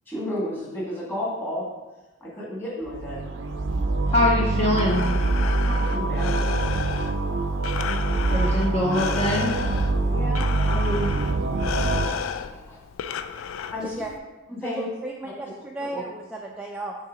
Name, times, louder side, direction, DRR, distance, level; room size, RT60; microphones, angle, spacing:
voice 1, 0.1-1.7 2.2-3.3 5.6-6.5 10.1-11.1 11.9-12.8 13.7-13.9 14.5-14.9 15.8-16.0, left 1 dB, 10° left, -6 dB, 1.5 m, -32 dB
sound 1, 2.9-12.1, right 3 dB, 70° right, 0.5 m, -24 dB
voice 2, 4.1-5.0 8.3-9.5, left 1 dB, 30° left, -3 dB, 0.6 m, -23 dB
Breathing, 4.5-14.2, left 7 dB, 85° left, 0.3 m, -33 dB
voice 3, 13.8-14.1 14.6-17.0, right 1 dB, 5° right, -1 dB, 0.3 m, -34 dB
6.6 x 2.8 x 5.1 m, 1.1 s
head